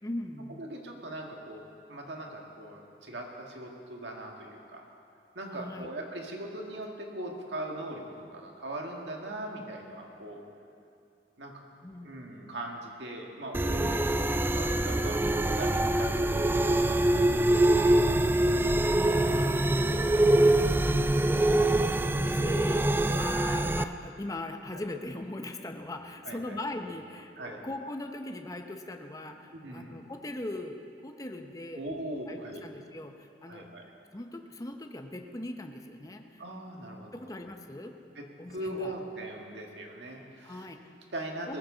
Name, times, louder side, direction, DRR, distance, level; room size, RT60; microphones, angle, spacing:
voice 1, 0.0-0.6 5.5-5.9 11.8-12.3 13.8-14.1 15.2-15.7 18.9-19.8 20.3-30.8 31.0-31.8 32.3-33.8 34.1-36.4 37.1-37.9 38.4-38.9 40.4-40.9 41.5-41.6, left 1 dB, 20° left, 5 dB, 0.7 m, -40 dB
voice 2, 0.6-1.6 1.9-4.9 5.4-10.4 11.4-11.5 12.0-13.9 14.2-15.2 15.5-17.9 18.2-18.5 21.4-21.6 24.7-24.8 26.2-26.6 27.4-27.6 29.5-30.0 31.7-32.7 33.5-33.9 36.4-37.1 38.2-38.3 38.5-40.7 41.1-41.6, right 1 dB, 80° right, 1 dB, 1.9 m, -40 dB
sound 1, 13.5-23.8, right 1 dB, 10° right, 0.3 m, -24 dB
19.5 x 14.0 x 3.9 m, 2.5 s
head